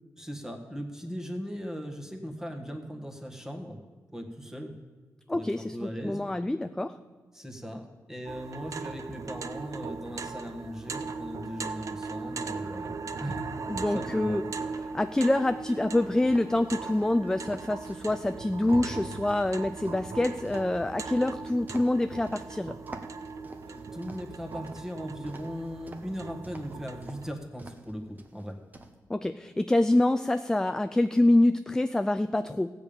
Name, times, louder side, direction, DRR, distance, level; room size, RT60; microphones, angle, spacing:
voice 1, 0.2-3.8 4.1-4.8 5.3-6.2 7.3-13.5 13.9-14.4 23.7-28.6, equal, 5° right, 2 dB, 1.6 m, -38 dB
voice 2, 5.3-5.6 6.0-6.9 13.7-14.4 14.9-22.8 29.1-32.7, left 1 dB, 10° left, 9 dB, 0.4 m, -26 dB
sound 1, 8.3-27.3, right 4 dB, 60° right, 0.7 m, -39 dB
sound 2, 16.3-18.2 18.7-22.5 22.9-24.8 25.3-26.1 26.4-26.7 27.0-27.2 27.6-27.9 28.2-28.9, right 2 dB, 25° right, 1.1 m, -47 dB
15.0 x 5.3 x 8.8 m, 1.4 s
cardioid pair, 95°, 6 cm